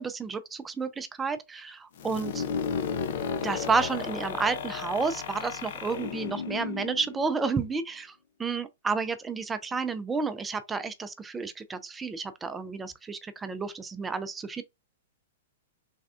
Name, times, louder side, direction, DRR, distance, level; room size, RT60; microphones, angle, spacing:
voice 1, 0.0-2.4 3.4-8.1 8.4-14.6, right 4 dB, 15° right, 0.4 m, -31 dB
sound 1, 2.0-7.7, left 6 dB, 60° left, 0.5 m, -34 dB
3.3 x 2.3 x 2.4 m
hypercardioid pair, 110°, 0 cm